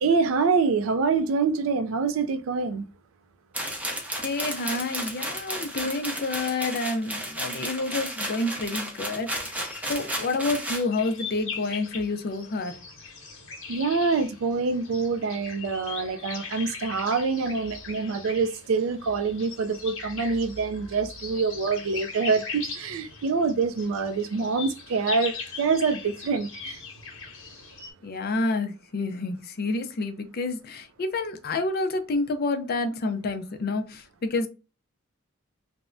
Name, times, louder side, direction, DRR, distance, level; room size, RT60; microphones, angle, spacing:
voice 1, 0.0-2.8 13.7-26.8, right 4 dB, 70° right, 0.4 m, -26 dB
sound 1, 3.5-10.8, right 1 dB, 5° right, 0.6 m, -33 dB
voice 2, 4.2-9.5 9.9-12.8 28.0-34.5, left 3 dB, 50° left, 0.5 m, -29 dB
sound 2, 9.4-27.9, left 5 dB, 65° left, 0.9 m, -40 dB
3.3 x 2.1 x 2.5 m
head